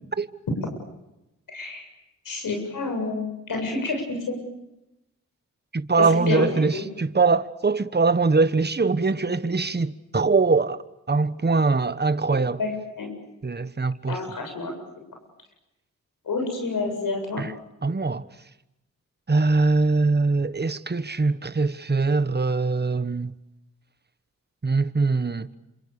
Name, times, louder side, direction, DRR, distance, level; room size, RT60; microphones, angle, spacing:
voice 1, 1.5-1.8 2.3-4.0 4.3-4.4 6.0-6.4 6.7-6.8 12.3-13.1 14.1-14.7 16.3-17.5, left 3 dB, 85° left, 7.5 m, -29 dB
voice 2, 5.7-10.8 11.1-12.6 13.4-14.2 17.4-17.5 17.8-18.3 19.3-23.3 24.6-25.5, right 3 dB, 30° right, 1.3 m, -22 dB
28.0 x 26.5 x 6.9 m
cardioid pair, 45°, 33 cm